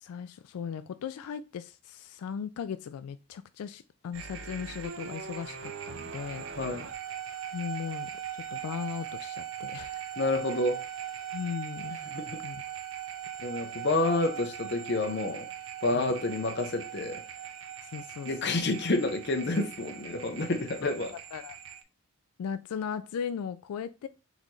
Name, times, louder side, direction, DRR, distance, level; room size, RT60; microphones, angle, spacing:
voice 1, 0.0-6.4 7.5-8.1 8.5-10.0 11.3-12.0 12.4-12.6 15.9-16.1 17.8-18.6 20.8-20.9 21.3-21.6 22.4-24.1, left 7 dB, 90° left, 0.3 m, -37 dB
sound 1, 4.1-21.8, right 9 dB, 60° right, 0.6 m, -40 dB
voice 2, 6.6-6.9 10.2-10.8 12.0-12.4 13.4-15.5 15.8-17.2 18.3-21.1, left 2 dB, 50° left, 0.6 m, -29 dB
4.0 x 3.9 x 3.1 m
head